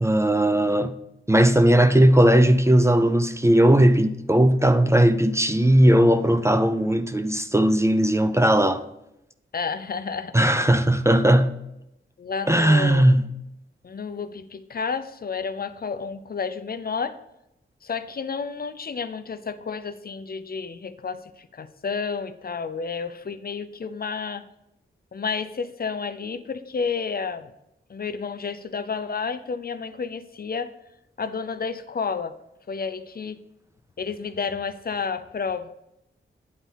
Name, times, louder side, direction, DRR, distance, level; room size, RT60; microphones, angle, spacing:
voice 1, 0.0-0.9 1.3-8.8 10.3-11.5 12.5-13.2, right 1 dB, 15° right, 0.5 m, -18 dB
voice 2, 9.5-10.4 12.2-13.0 13.8-17.2 17.8-24.5 25.1-27.5 27.9-30.7 31.2-32.3 32.7-33.4 34.0-35.7, left 5 dB, 50° left, 0.5 m, -31 dB
8.9 x 4.1 x 5.5 m
wide cardioid pair, 80°, 20 cm